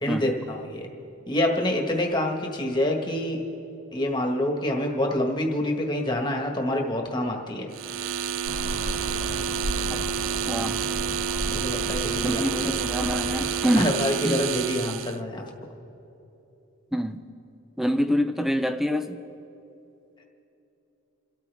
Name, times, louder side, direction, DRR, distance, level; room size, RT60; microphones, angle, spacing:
voice 1, 0.0-0.9 1.3-3.4 3.9-7.7 11.5-12.7 13.8-15.4, left 1 dB, 20° left, 1 dB, 1.5 m, -27 dB
sound 1, 7.7-15.2, right 7 dB, 75° right, 0.4 m, -29 dB
sound 2, 8.4-13.6, equal, 50° right, 2.5 m, -34 dB
voice 2, 9.9-10.8 12.2-14.0 14.2-14.4 16.9-17.2 17.8-19.2, equal, ahead, 9 dB, 0.5 m, -26 dB
29.0 x 13.0 x 3.5 m, 3.0 s
head